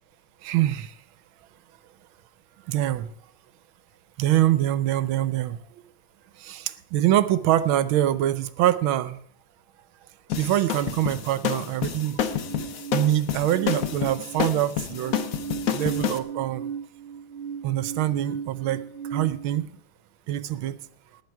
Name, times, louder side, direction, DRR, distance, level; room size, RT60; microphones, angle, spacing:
voice 1, 0.4-0.9 2.7-3.1 4.2-5.6 6.4-9.2 10.4-12.2 12.9-15.2 15.6-16.7 17.6-18.8 19.1-19.7 20.3-20.7, right 13 dB, 80° right, 14 dB, 1.5 m, -24 dB
sound 1, 10.3-16.2, left 8 dB, 55° left, 1.0 m, -29 dB
sound 2, 12.3-14.6 15.0-19.7, right 7 dB, 40° right, 0.9 m, -36 dB
17.0 x 9.9 x 4.6 m, 0.62 s
omnidirectional pair, 2.3 m